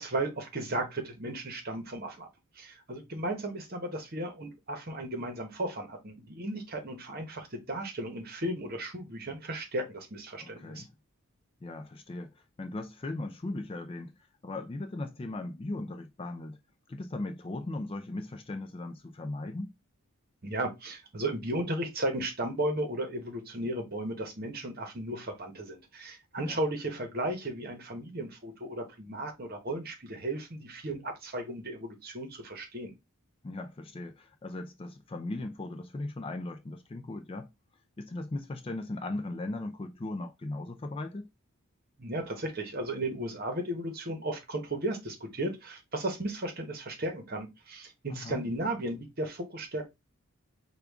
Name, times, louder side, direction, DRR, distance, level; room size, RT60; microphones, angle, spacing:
voice 1, 0.0-2.3 2.6-10.8 20.4-32.9 42.0-49.9, right 1 dB, 40° right, 1.0 m, -35 dB
voice 2, 10.4-10.9 11.6-14.1 14.4-16.6 16.9-19.7 26.4-26.6 33.4-37.5 38.0-41.3 48.1-48.4, left 2 dB, 25° left, 0.3 m, -38 dB
4.9 x 2.3 x 3.5 m
head